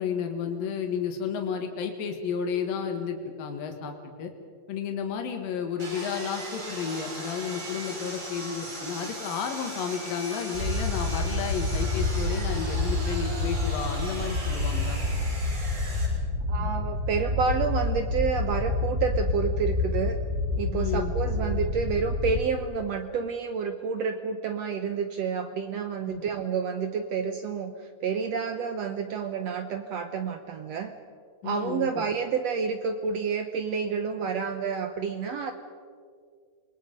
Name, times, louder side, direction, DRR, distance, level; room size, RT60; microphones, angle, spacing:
voice 1, 0.0-4.3 4.7-15.0 16.6-16.7 20.7-21.1 26.1-26.2 31.4-32.0, left 7 dB, 75° left, 4 dB, 3.4 m, -32 dB
Sawing, 5.8-16.1, right 2 dB, 55° right, 7.8 m, -38 dB
sound 1, 10.5-22.4, left 2 dB, 25° right, 4.6 m, -28 dB
voice 2, 16.5-20.2 20.6-30.9 31.4-35.5, right 6 dB, 75° right, 7 dB, 1.5 m, -29 dB
28.0 x 21.5 x 5.3 m, 2.1 s
omnidirectional pair, 4.1 m